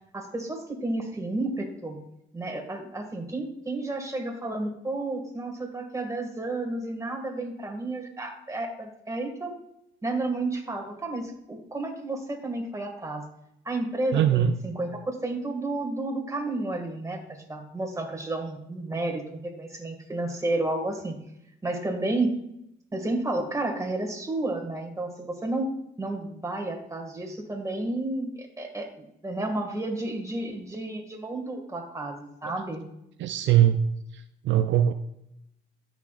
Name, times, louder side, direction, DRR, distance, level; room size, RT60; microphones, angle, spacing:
voice 1, 0.1-2.0 2.3-9.6 10.0-13.2 13.7-17.2 17.5-21.2 21.6-22.3 22.9-32.8, right 2 dB, 15° right, 2 dB, 2.1 m, -31 dB
voice 2, 14.1-14.6 33.2-33.8 34.4-34.9, right 11 dB, 70° right, 9 dB, 0.5 m, -21 dB
13.0 x 6.2 x 2.5 m, 0.80 s
cardioid pair, 90°, 20 cm